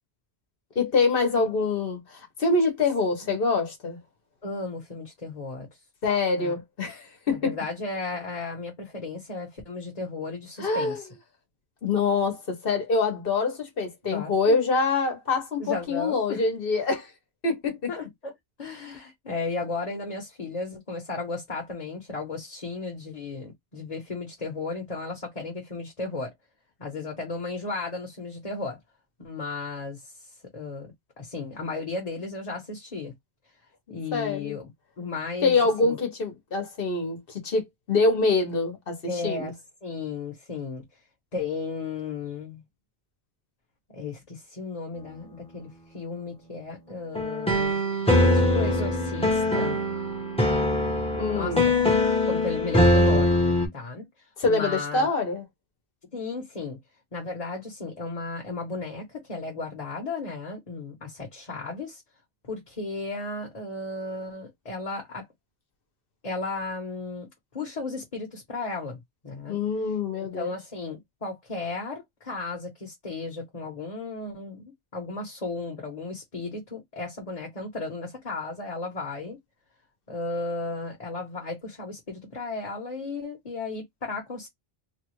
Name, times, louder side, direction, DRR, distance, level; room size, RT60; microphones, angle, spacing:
voice 1, 0.7-4.0 6.0-7.6 10.6-11.0 11.8-17.1 17.4-17.9 33.9-34.6 35.4-37.6 37.9-39.0 39.2-39.5 51.1-51.7 54.4-55.4 69.5-70.5, left 3 dB, 65° left, 1.2 m, -25 dB
voice 2, 4.4-5.7 6.3-6.5 7.3-11.1 14.0-14.6 15.6-16.4 17.9-18.3 18.6-26.3 26.8-28.8 29.2-30.1 30.5-30.9 31.2-33.1 33.9-34.7 35.0-36.0 39.1-39.5 39.8-40.8 41.3-42.6 43.9-47.8 48.2-49.8 51.3-51.9 52.3-55.1 56.1-56.8 57.1-62.0 62.4-65.2 66.2-67.3 67.5-69.6 70.2-79.4 80.1-84.5, left 3 dB, 40° left, 1.1 m, -34 dB
sound 1, 47.1-53.7, left 1 dB, 5° left, 0.8 m, -22 dB
3.1 x 2.4 x 3.0 m
omnidirectional pair, 1.0 m